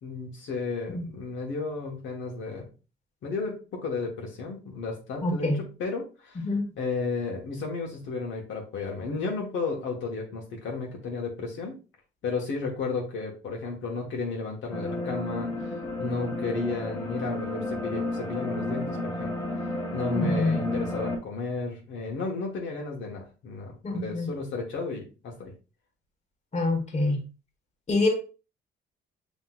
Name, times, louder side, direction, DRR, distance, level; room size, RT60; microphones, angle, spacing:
voice 1, 0.0-2.7 3.2-6.4 6.8-11.8 12.2-19.3 19.9-25.5, left 4 dB, 75° left, -1 dB, 1.3 m, -33 dB
voice 2, 5.2-5.6 6.4-6.7 20.1-20.6 23.8-24.3 26.5-27.2 27.9-28.1, left 2 dB, 35° left, 2 dB, 1.4 m, -25 dB
sound 1, 14.7-21.2, left 2 dB, 20° left, 1.5 m, -32 dB
6.0 x 3.1 x 2.4 m, 0.33 s
cardioid pair, 90°, 20 cm